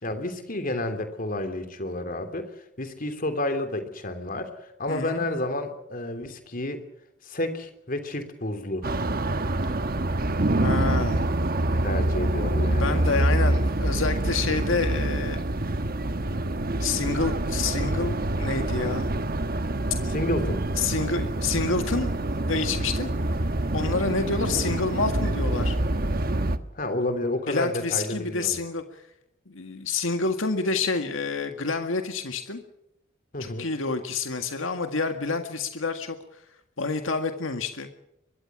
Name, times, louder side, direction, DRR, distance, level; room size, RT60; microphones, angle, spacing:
voice 1, 0.0-2.5 2.8-6.9 7.2-8.9 11.8-13.0 20.0-20.6 26.7-28.6 33.3-33.7, left 1 dB, 45° left, 8 dB, 3.2 m, -30 dB
voice 2, 4.9-5.3 10.6-11.2 12.7-15.4 16.8-19.1 20.8-22.2 22.5-23.1 23.7-25.8 27.5-28.8 29.5-32.6 33.4-36.2 36.8-37.9, left 4 dB, 85° left, 6 dB, 1.9 m, -28 dB
sound 1, 8.8-26.6, right 1 dB, 50° right, 1.2 m, -26 dB
23.5 x 22.5 x 6.2 m, 0.83 s
head